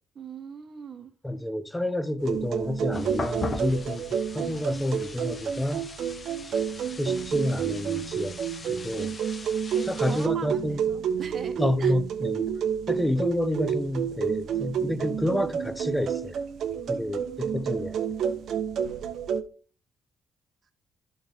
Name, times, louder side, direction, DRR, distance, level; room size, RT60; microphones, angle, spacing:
voice 1, 0.1-1.1 7.0-7.4 9.7-11.9 16.7-17.9, right 6 dB, 50° right, 1.3 m, -42 dB
voice 2, 1.2-5.9 7.0-8.4 8.7-9.2 9.9-10.8 11.6-12.5 12.9-16.4 16.9-18.0, left 1 dB, 10° left, 0.7 m, -29 dB
sound 1, 2.2-19.4, right 8 dB, 70° right, 0.9 m, -30 dB
sound 2, 2.9-10.3, left 3 dB, 35° left, 1.1 m, -39 dB
13.0 x 4.3 x 3.4 m
cardioid pair, 90°, 0 cm